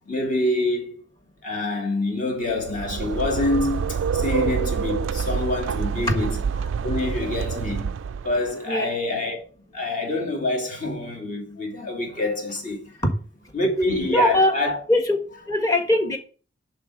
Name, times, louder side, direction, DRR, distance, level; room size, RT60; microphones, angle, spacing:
voice 1, 0.1-1.0 1.4-6.4 6.6-7.9 8.2-9.4 9.7-13.0 13.5-14.8, left 2 dB, 40° left, 2.5 m, -26 dB
sound 1, 2.5-8.5, right 6 dB, 70° right, 0.3 m, -27 dB
voice 2, 14.1-14.6 14.9-15.2 15.5-16.2, left 1 dB, 15° left, 1.4 m, -20 dB
10.5 x 3.7 x 6.3 m
head